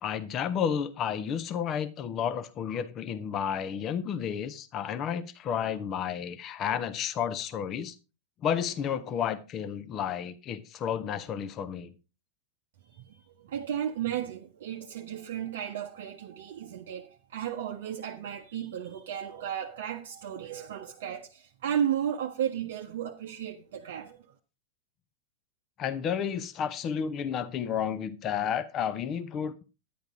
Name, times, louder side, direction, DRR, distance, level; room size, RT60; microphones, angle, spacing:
voice 1, 0.0-7.9 8.4-11.9 25.8-29.6, left 8 dB, 30° left, 0.8 m, -31 dB
voice 2, 12.9-24.3, right 9 dB, 55° right, 0.7 m, -34 dB
10.5 x 10.5 x 3.7 m
figure-of-eight pair, 90°, 0 cm